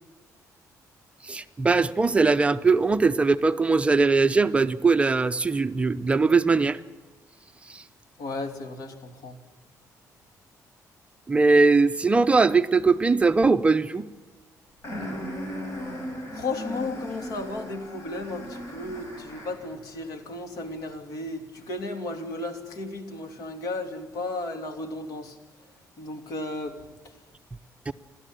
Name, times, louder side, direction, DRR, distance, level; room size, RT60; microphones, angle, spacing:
voice 1, 1.3-6.8 11.3-14.1 27.9-28.0, right 4 dB, 20° right, 10 dB, 0.6 m, -20 dB
voice 2, 8.2-9.4 16.3-25.4 26.0-26.8, left 2 dB, 75° left, 6 dB, 3.0 m, -34 dB
sound 1, 14.8-19.7, equal, 45° left, 7.2 m, -37 dB
29.5 x 12.5 x 9.3 m, 1.3 s
cardioid pair, 145°, 6 cm